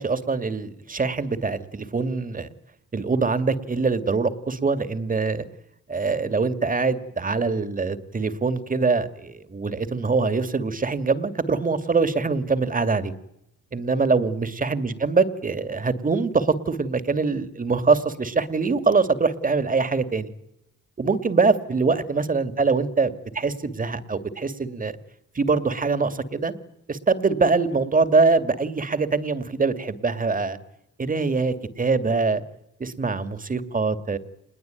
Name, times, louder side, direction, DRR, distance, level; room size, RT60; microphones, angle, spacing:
voice 1, 0.0-2.5 2.9-5.4 5.9-13.1 13.7-20.3 21.0-24.9 25.3-26.5 26.9-30.6 31.0-32.4 32.8-34.2, right 4 dB, 30° right, 11 dB, 2.3 m, -23 dB
27.0 x 21.0 x 9.2 m, 0.86 s
cardioid pair, 90°, 30 cm